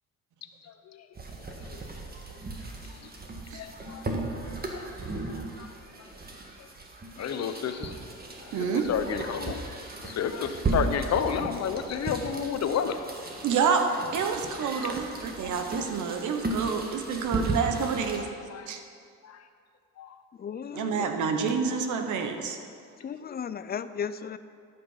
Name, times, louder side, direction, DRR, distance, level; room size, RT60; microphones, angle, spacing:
sound 1, 1.2-18.2, right 2 dB, 30° right, 1.5 m, -36 dB
voice 1, 3.5-4.0 4.7-4.8 5.6-5.7 7.2-7.9 8.6-9.6 10.0-13.0 15.8-15.9 18.5-18.7 19.2-19.4 20.0-20.1 20.8-21.0, left 7 dB, 60° left, 8 dB, 0.8 m, -30 dB
voice 2, 8.5-8.9 13.4-13.8 14.1-18.3 18.7-18.8 20.7-22.6, right 6 dB, 80° right, 5 dB, 1.1 m, -28 dB
voice 3, 20.3-21.1 23.0-24.4, left 7 dB, 30° left, 13 dB, 0.5 m, -35 dB
13.5 x 5.8 x 5.6 m, 2.3 s
cardioid pair, 90°, 30 cm